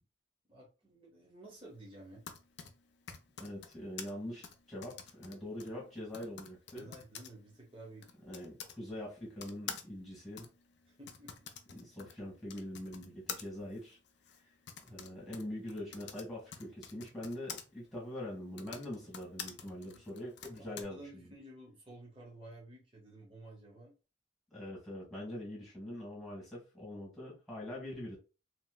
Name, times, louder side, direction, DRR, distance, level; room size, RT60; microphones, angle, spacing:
voice 1, 0.5-2.2 6.7-8.1 10.9-11.5 14.7-14.8 20.6-23.9, right 1 dB, 25° right, -3 dB, 0.9 m, -52 dB
Typing, 2.0-8.8 9.4-17.6 18.4-20.8, left 7 dB, 65° left, 0.4 m, -48 dB
voice 2, 3.4-6.9 8.2-10.5 11.7-14.0 14.4-14.5 14.8-21.3 24.5-28.2, left 1 dB, ahead, -5 dB, 1.5 m, -43 dB
3.1 x 2.8 x 2.2 m, 0.31 s
head